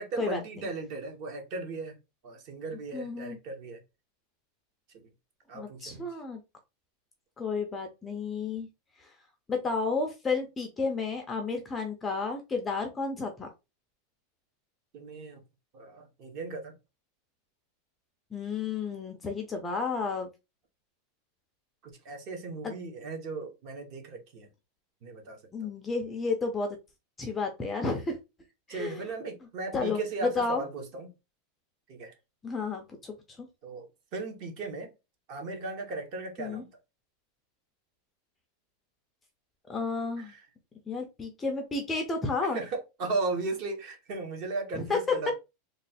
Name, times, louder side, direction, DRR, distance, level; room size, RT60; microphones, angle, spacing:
voice 1, 0.0-2.0 2.2-3.8 4.9-5.1 5.5-6.1 14.9-15.4 15.7-16.8 21.8-24.5 25.0-25.7 28.7-31.1 31.9-32.1 33.6-34.9 35.3-36.7 40.2-40.5 42.4-45.3, right 3 dB, 35° right, 1.0 m, -37 dB
voice 2, 2.9-3.4 5.5-6.4 7.4-8.7 9.5-13.5 18.3-20.3 25.5-26.8 27.2-28.2 28.7-29.0 29.7-30.0 30.4-30.6 32.4-33.5 36.4-36.6 39.7-40.3 40.9-42.6 44.7-45.0, left 4 dB, 10° left, 0.5 m, -32 dB
3.1 x 2.3 x 4.1 m
supercardioid pair, 175°, 0 cm